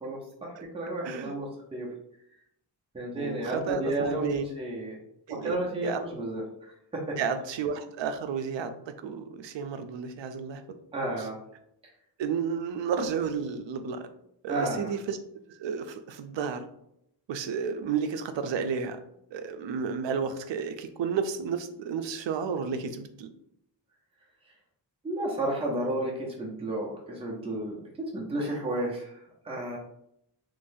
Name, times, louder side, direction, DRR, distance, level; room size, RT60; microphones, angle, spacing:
voice 1, 0.0-1.9 2.9-5.0 5.3-7.2 10.9-11.4 14.5-14.9 25.0-27.8 28.1-29.8, right 1 dB, 15° right, -3 dB, 0.6 m, -32 dB
voice 2, 1.0-1.3 3.2-4.4 5.3-5.6 5.8-6.0 7.2-10.6 12.2-14.1 14.4-15.2 15.5-16.6 17.3-19.0 19.3-23.3, right 6 dB, 75° right, 8 dB, 0.5 m, -32 dB
3.9 x 3.1 x 2.6 m, 0.76 s
wide cardioid pair, 180°, 44 cm